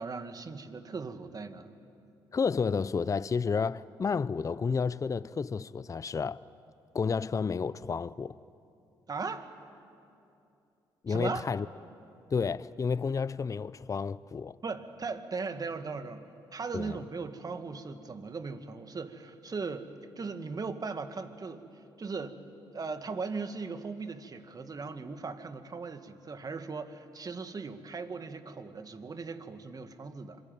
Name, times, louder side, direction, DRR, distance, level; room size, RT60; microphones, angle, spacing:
voice 1, 0.0-1.7 9.1-9.5 11.1-11.4 14.6-19.9 20.2-22.4 22.7-30.4, right 4 dB, 40° right, 2.0 m, -38 dB
voice 2, 2.3-6.4 6.9-8.4 11.0-11.7 12.3-14.6 16.7-17.0, left 5 dB, 35° left, 0.6 m, -31 dB
26.0 x 23.0 x 9.3 m
supercardioid pair, 55°, 10 cm